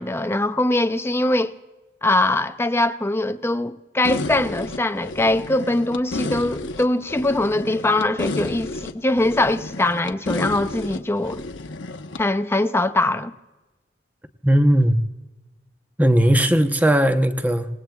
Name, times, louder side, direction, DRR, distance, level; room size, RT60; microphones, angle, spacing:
voice 1, 0.0-1.5 2.0-11.4 12.2-13.3, left 2 dB, 15° left, 0.5 m, -22 dB
sound 1, 4.0-12.2, left 2 dB, 80° left, 1.0 m, -32 dB
voice 2, 14.4-15.0 16.0-17.7, equal, 10° right, 0.8 m, -17 dB
27.5 x 18.5 x 2.3 m
head